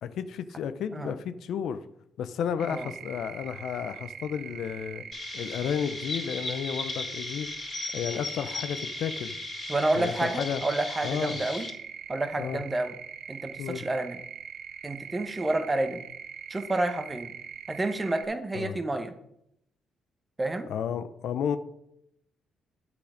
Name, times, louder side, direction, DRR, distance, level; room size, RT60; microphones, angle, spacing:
voice 1, 0.0-1.8 2.2-5.0 5.3-7.5 7.9-9.4 9.9-10.6 11.0-11.4 12.4-12.6 13.6-13.8 18.5-18.8 20.7-21.6, left 8 dB, 75° left, 12 dB, 0.6 m, -32 dB
sound 1, 2.6-18.3, right 8 dB, 70° right, 0.7 m, -42 dB
Chirp tweet, 5.1-11.7, left 4 dB, 40° left, 1.9 m, -37 dB
voice 2, 9.7-11.7 12.1-12.9 13.3-14.2 14.8-16.0 16.5-17.3 17.7-19.1 20.4-20.7, right 2 dB, 20° right, 8 dB, 1.0 m, -29 dB
8.6 x 6.2 x 5.1 m, 0.78 s
cardioid pair, 90°, 0 cm